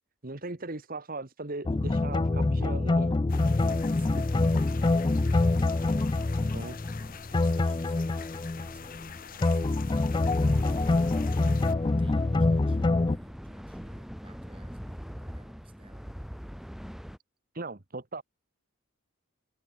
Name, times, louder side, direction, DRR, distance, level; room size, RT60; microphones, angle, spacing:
voice 1, 0.2-3.1 4.2-4.5 6.5-6.8 17.5-18.2, right 2 dB, 40° right, 1.4 m, -38 dB
sound 1, 1.7-9.1 9.4-13.2, left 2 dB, 20° left, 0.3 m, -25 dB
sound 2, 3.3-11.7, left 6 dB, 40° left, 0.8 m, -46 dB
voice 2, 3.9-5.3 6.3-16.1, right 1 dB, 25° right, 7.3 m, -57 dB
sound 3, 10.4-17.2, equal, ahead, 2.1 m, -42 dB
head